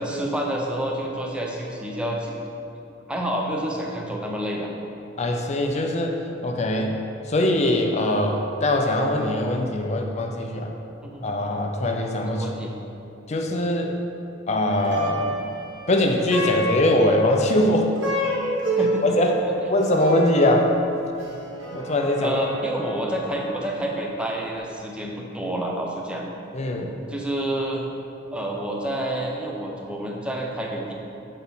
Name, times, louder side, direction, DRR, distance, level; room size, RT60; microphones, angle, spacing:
voice 1, 0.0-2.3 3.1-4.7 11.0-11.3 12.3-12.7 18.8-19.3 22.2-26.2 27.1-27.8 28.3-30.9, right 1 dB, 5° right, -1 dB, 0.6 m, -28 dB
voice 2, 5.2-7.0 7.3-10.7 11.2-12.5 13.3-14.0 14.5-15.4 15.9-17.9 19.0-19.3 19.7-20.7 21.7-22.4 26.5-27.0, left 1 dB, 35° left, 2 dB, 0.5 m, -22 dB
Plucked string instrument, 14.7-24.1, equal, 80° right, 1.4 m, -29 dB
6.1 x 4.2 x 5.5 m, 2.7 s
head